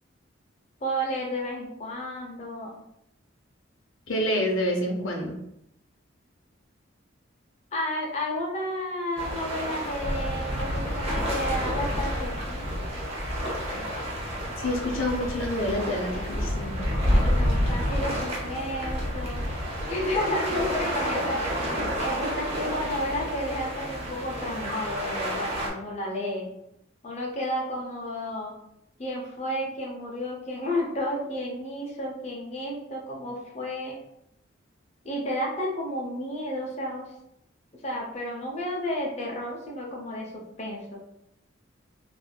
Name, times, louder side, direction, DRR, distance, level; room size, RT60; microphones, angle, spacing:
voice 1, 0.8-2.8 7.7-12.7 17.0-19.4 19.9-26.5 27.0-28.5 29.0-34.0 35.0-37.1 37.8-41.1, left 1 dB, 35° left, -2 dB, 0.5 m, -32 dB
voice 2, 4.1-5.4 14.6-16.9, left 1 dB, 90° left, 1 dB, 0.6 m, -28 dB
sound 1, 9.2-25.7, equal, 30° right, 0.7 m, -29 dB
3.4 x 2.4 x 2.2 m, 0.78 s
head